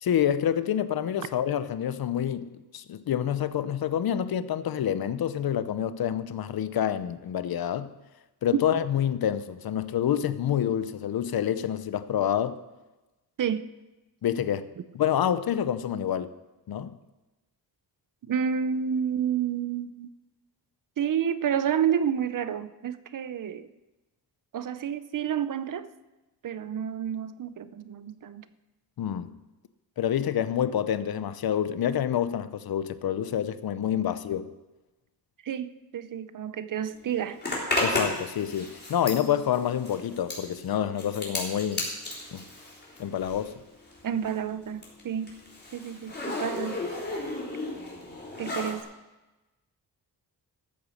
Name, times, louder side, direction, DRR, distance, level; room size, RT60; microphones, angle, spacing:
voice 1, 0.0-7.9 8.4-12.6 14.2-14.6 14.9-16.3 16.7-16.9 29.0-29.3 30.0-34.5 37.8-41.9 42.3-42.4 43.0-43.6, left 9 dB, 65° left, 0.7 m, -27 dB
voice 2, 18.3-20.1 21.0-23.7 24.5-25.9 26.4-28.5 33.8-34.1 35.4-37.4 44.0-45.3 45.7-46.8 48.4-48.9, right 8 dB, 55° right, 0.7 m, -30 dB
Zipper (clothing), 37.4-43.6 43.9-48.8, left 2 dB, 25° left, 3.8 m, -33 dB
14.0 x 8.1 x 6.4 m
wide cardioid pair, 125°, 39 cm